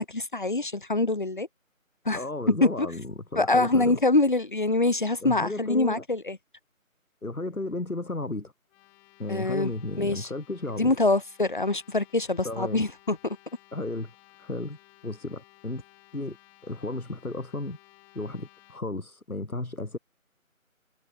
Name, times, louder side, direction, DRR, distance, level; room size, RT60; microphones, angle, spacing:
voice 1, 0.0-1.5 2.1-2.2 2.6-2.9 3.3-6.4 9.3-9.7 10.0-10.3 10.8-13.4, left 2 dB, 35° left, 1.0 m, -25 dB
voice 2, 2.1-3.9 5.2-6.0 7.2-8.5 9.2-10.9 12.4-12.9 13.7-14.1 14.4-14.8 15.0-15.8 16.1-16.4 16.6-17.8 18.1-20.0, left 2 dB, 85° left, 4.3 m, -34 dB
sound 1, 8.6-18.8, left 29 dB, 5° left, 2.1 m, -57 dB
figure-of-eight pair, 165°, 42 cm